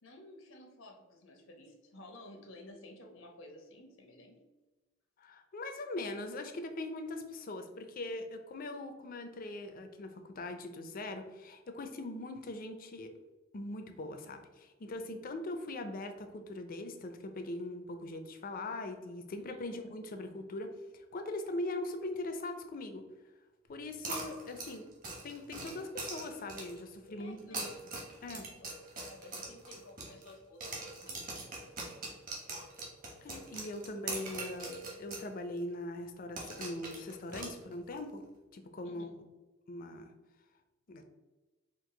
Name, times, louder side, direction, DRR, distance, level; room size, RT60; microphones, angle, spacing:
voice 1, 0.0-4.4 19.5-19.6 27.0-27.6 28.2-28.5 29.0-31.3 38.8-39.1, left 1 dB, 85° left, 2 dB, 0.9 m, -53 dB
voice 2, 5.2-13.1 13.5-23.0 23.7-24.8 25.2-27.7 28.2-28.5 33.2-38.2 38.5-39.2 39.7-40.1 40.9-41.0, left 2 dB, 45° left, 7 dB, 0.5 m, -41 dB
sound 1, 24.0-26.9 27.4-30.3 30.6-35.3 35.6-35.7 36.4-38.0, right 2 dB, 45° right, 1.1 m, -42 dB
4.5 x 2.5 x 3.8 m, 1.2 s
head